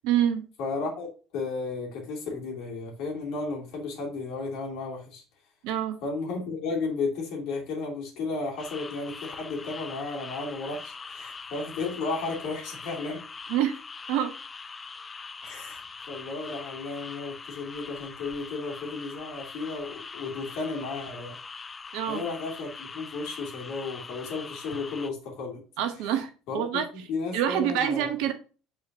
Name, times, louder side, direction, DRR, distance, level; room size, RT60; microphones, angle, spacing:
voice 1, 0.0-0.5 5.6-6.0 13.5-13.7 14.1-14.3 21.9-22.2 25.8-26.9 27.3-28.3, right 10 dB, 60° right, 0.9 m, -26 dB
voice 2, 0.6-1.1 1.3-5.2 6.0-13.2 15.4-21.4 22.1-25.6 26.5-28.1, left 3 dB, 55° left, 2.6 m, -34 dB
sound 1, 8.6-25.1, left 5 dB, 25° left, 0.5 m, -42 dB
8.2 x 4.3 x 2.6 m
figure-of-eight pair, 60°, 0 cm